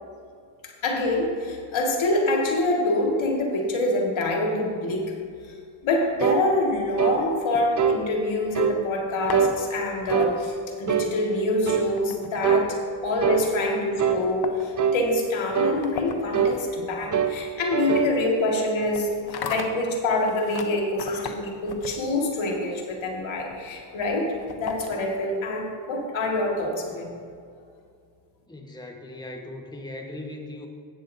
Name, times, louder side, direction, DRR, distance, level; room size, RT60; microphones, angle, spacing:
voice 1, 0.6-5.1 5.4-5.5 5.8-27.1, left 2 dB, 75° left, 0 dB, 2.0 m, -26 dB
sound 1, 6.2-6.5 7.0-7.2 7.8-8.0 8.5-8.8 9.3-9.6 10.1-10.3 10.9-11.1 11.7-11.9 12.4-12.7 13.2-13.5 14.0-14.2 14.8-15.0 15.5-15.8 16.3-16.6 17.1-17.4 17.7-18.1, right 7 dB, 40° right, 0.9 m, -23 dB
sound 2, 6.8-8.4 9.0-25.3, left 5 dB, 55° left, 1.0 m, -40 dB
voice 2, 28.5-30.7, left 1 dB, 10° left, 2 dB, 1.2 m, -38 dB
14.0 x 9.2 x 2.7 m, 2.2 s
cardioid pair, 60°, 47 cm